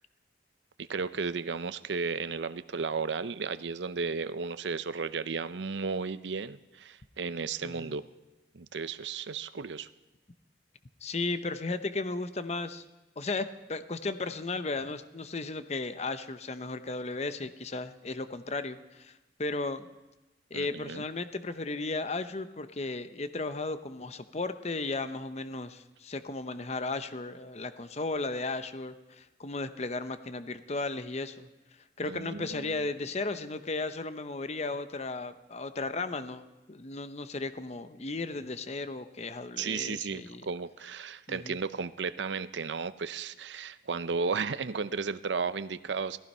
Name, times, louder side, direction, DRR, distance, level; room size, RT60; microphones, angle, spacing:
voice 1, 0.8-8.1 8.5-9.9 20.5-21.0 32.1-32.7 39.6-46.2, right 5 dB, 80° right, 13 dB, 0.6 m, -34 dB
voice 2, 7.6-7.9 11.0-12.8 13.2-19.1 19.4-19.9 20.5-31.5 32.0-36.4 36.7-40.5 41.3-41.6, left 3 dB, 35° left, 11 dB, 0.8 m, -35 dB
17.5 x 15.0 x 5.5 m, 1.1 s
head